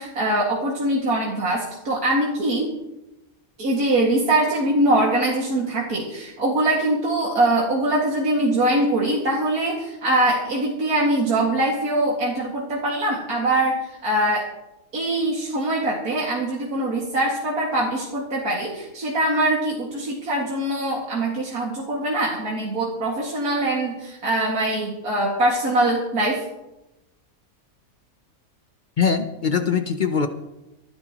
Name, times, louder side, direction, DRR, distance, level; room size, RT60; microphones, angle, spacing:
voice 1, 0.0-2.7 3.6-13.8 14.0-14.4 14.9-26.4, right 1 dB, 90° right, -4 dB, 2.6 m, -23 dB
voice 2, 29.0-30.3, left 6 dB, 45° left, 8 dB, 0.7 m, -22 dB
26.0 x 9.9 x 3.0 m, 0.97 s
omnidirectional pair, 1.5 m